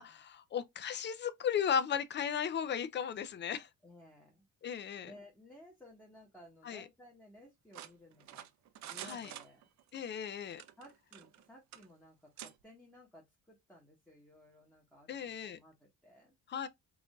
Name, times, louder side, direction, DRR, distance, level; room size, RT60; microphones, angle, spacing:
voice 1, 0.0-3.7 4.6-5.1 6.7-6.8 9.0-9.3 9.9-10.6 15.1-15.6 16.5-16.7, left 8 dB, 35° left, 0.5 m, -35 dB
voice 2, 3.8-4.4 4.7-8.5 8.8-9.6 10.8-16.3, left 1 dB, 5° left, 1.3 m, -58 dB
sound 1, 7.7-10.0 10.5-11.4 11.7-11.9 12.4-12.5, right 11 dB, 60° right, 0.6 m, -48 dB
4.8 x 2.7 x 2.2 m
cardioid pair, 125°, 31 cm